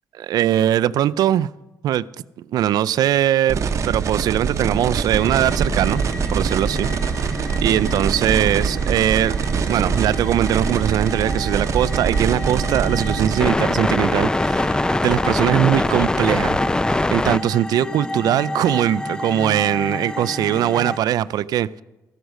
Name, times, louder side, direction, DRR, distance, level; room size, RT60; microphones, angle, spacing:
voice 1, 0.1-1.5 1.8-2.0 2.4-3.6 3.8-6.9 7.3-9.4 9.7-16.6 16.9-21.8, right 11 dB, 70° right, 0.4 m, -21 dB
sound 1, 3.5-13.5, right 6 dB, 45° right, 0.8 m, -23 dB
sound 2, 5.2-21.0, left 2 dB, 10° left, 0.4 m, -26 dB
14.0 x 8.0 x 6.3 m
cardioid pair, 100°, 7 cm